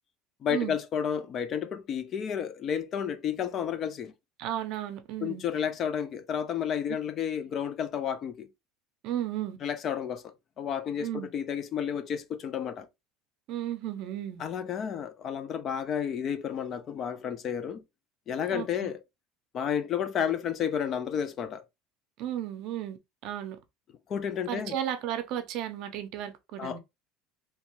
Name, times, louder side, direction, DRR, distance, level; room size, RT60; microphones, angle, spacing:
voice 1, 0.4-4.1 5.2-8.5 9.6-12.9 14.4-17.8 18.3-19.0 19.5-21.6 24.1-24.7 26.6-26.8, left 8 dB, 35° left, 0.3 m, -31 dB
voice 2, 4.4-5.4 9.0-9.6 11.0-11.3 13.5-14.4 18.5-18.9 22.2-23.6 24.5-26.8, right 11 dB, 55° right, 0.5 m, -34 dB
2.8 x 2.2 x 2.9 m
cardioid pair, 140°, 0 cm